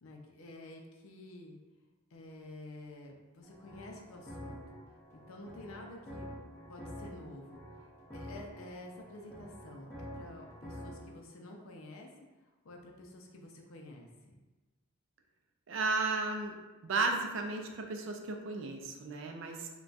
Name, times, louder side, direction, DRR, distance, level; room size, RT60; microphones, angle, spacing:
voice 1, 0.0-1.6 2.1-4.6 5.3-6.3 6.7-7.6 8.1-12.1 12.6-14.4, left 2 dB, 70° left, 1 dB, 0.5 m, -50 dB
sound 1, 3.4-11.1, equal, 10° left, 0.7 m, -48 dB
voice 2, 15.7-16.5 16.8-19.7, right 3 dB, 60° right, 3 dB, 0.4 m, -34 dB
2.3 x 2.2 x 3.9 m, 1.2 s
head